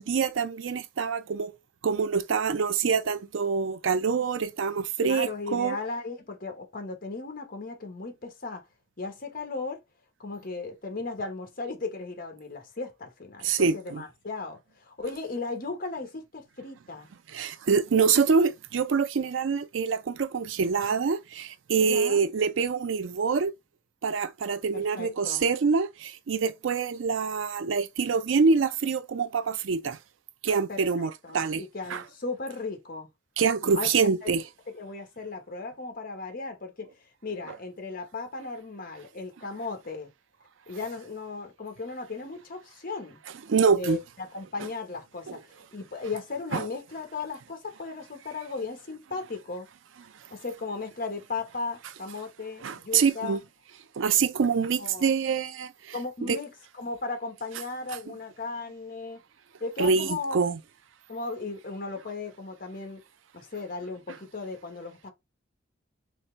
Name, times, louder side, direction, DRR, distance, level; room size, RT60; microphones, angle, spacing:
voice 1, 0.0-1.5 1.8-5.8 13.4-14.0 17.3-23.5 24.0-30.0 30.4-31.6 31.9-32.0 33.4-34.4 43.5-44.0 46.5-46.7 52.6-53.4 54.0-55.7 56.2-56.4 59.8-60.6, right 5 dB, 85° right, 0.5 m, -25 dB
voice 2, 5.0-8.6 9.0-9.8 10.2-17.1 21.8-22.2 24.7-25.5 30.7-33.1 33.7-33.9 34.2-34.3 34.7-36.9 37.2-40.1 40.7-43.2 43.7-45.4 45.7-49.7 50.3-53.4 54.8-55.1 55.9-59.2 59.6-60.4 61.1-63.0 63.3-65.1, left 3 dB, 50° left, 1.2 m, -36 dB
4.2 x 3.4 x 3.2 m
head